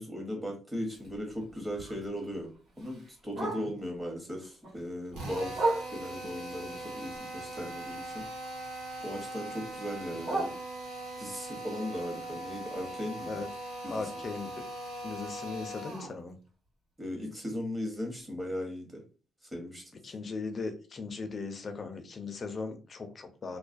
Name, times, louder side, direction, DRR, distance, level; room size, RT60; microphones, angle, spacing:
voice 1, 0.0-2.5 2.8-5.6 5.9-8.5 9.0-10.5 11.2-13.3 13.8-14.1 17.0-18.9 19.5-19.8, equal, 10° right, 0 dB, 1.0 m, -37 dB
Bark, 0.8-4.0 4.4-6.3 6.8-8.6 8.9-11.2 11.6-15.6 15.9-16.0 16.3-16.7 17.1-17.2 17.5-17.6 18.2-18.3, right 2 dB, 65° right, 1.3 m, -39 dB
voice 2, 3.4-3.7 13.3-13.5 13.9-14.5 15.0-16.4 20.0-23.6, left 4 dB, 40° left, 6 dB, 0.5 m, -38 dB
Drill, 5.1-16.2, right 1 dB, 90° right, 0.6 m, -41 dB
2.3 x 2.1 x 2.5 m, 0.38 s
cardioid pair, 90°, 0 cm